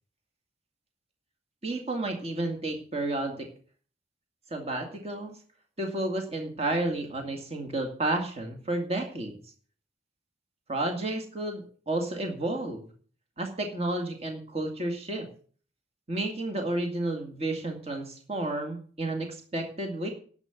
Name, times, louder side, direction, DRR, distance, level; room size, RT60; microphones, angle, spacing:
voice 1, 1.6-3.5 4.5-5.4 5.8-9.4 10.7-12.9 13.4-15.3 16.1-20.1, right 2 dB, 35° right, 4 dB, 2.2 m, -31 dB
11.0 x 7.5 x 7.9 m, 0.43 s
head